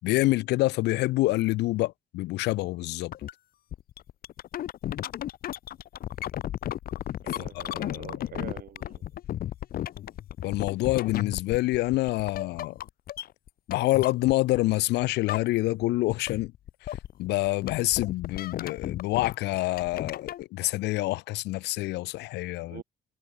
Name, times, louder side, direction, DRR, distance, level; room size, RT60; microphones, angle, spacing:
voice 1, 0.0-3.1 7.2-8.3 10.4-12.8 13.7-16.5 16.8-22.8, left 19 dB, 85° left, 4.8 m, -27 dB
sound 1, 3.1-3.3 3.7-14.7 15.0-15.8 16.1-20.4, left 12 dB, 60° left, 2.6 m, -34 dB
voice 2, 7.2-9.0 22.7-22.8, right 11 dB, 60° right, 6.8 m, -44 dB
cardioid pair, 110°, 17 cm